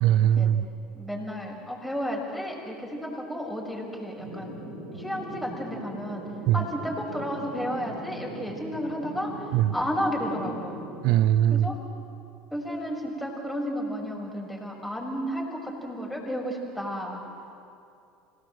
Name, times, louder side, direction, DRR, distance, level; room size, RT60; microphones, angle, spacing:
voice 1, 0.0-0.6 6.5-6.6 9.5-9.7 11.0-11.7, right 11 dB, 60° right, 18 dB, 0.5 m, -21 dB
voice 2, 0.9-4.6 4.9-6.2 6.5-9.3 9.7-10.8 11.5-11.8 12.5-17.2, equal, ahead, -2 dB, 6.4 m, -32 dB
sound 1, 4.2-11.2, right 1 dB, 75° right, 4.4 m, -40 dB
26.5 x 18.0 x 8.0 m, 2.6 s
hypercardioid pair, 75°, 0 cm